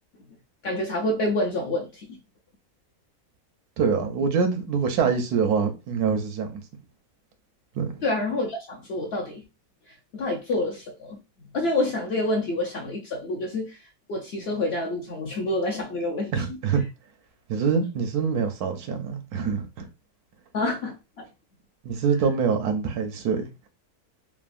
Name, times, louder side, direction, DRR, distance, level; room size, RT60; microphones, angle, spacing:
voice 1, 0.6-2.2 8.0-9.4 10.1-11.2 11.5-13.8 14.1-16.3 20.5-21.2, left 2 dB, 60° left, 0.7 m, -27 dB
voice 2, 3.8-6.5 7.7-8.0 16.3-16.8 17.5-19.9 21.8-23.5, right 5 dB, 90° right, 1.2 m, -25 dB
3.5 x 2.0 x 2.4 m
omnidirectional pair, 1.6 m